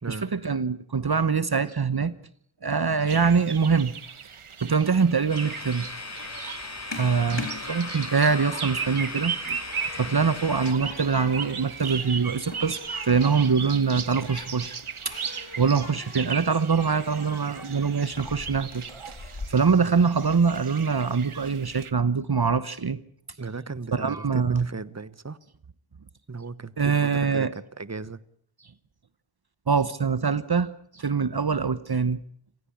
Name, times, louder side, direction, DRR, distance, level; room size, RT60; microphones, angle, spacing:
voice 1, 0.1-2.1 2.6-3.9 4.6-5.9 7.0-9.6 10.0-14.8 15.0-15.1 15.6-23.0 23.9-24.7 26.8-27.5 29.7-30.7 30.9-32.2, right 5 dB, 50° right, 15 dB, 1.0 m, -24 dB
sound 1, 3.1-21.9, right 6 dB, 85° right, 1.2 m, -37 dB
Human group actions, 5.2-19.5, left 3 dB, 60° left, 4.1 m, -42 dB
sound 2, 5.3-10.7, left 3 dB, 30° left, 2.3 m, -38 dB
voice 2, 23.4-25.4 26.3-28.2, right 4 dB, 30° right, 17 dB, 1.2 m, -37 dB
27.0 x 16.5 x 8.7 m, 0.63 s
wide cardioid pair, 50°, 49 cm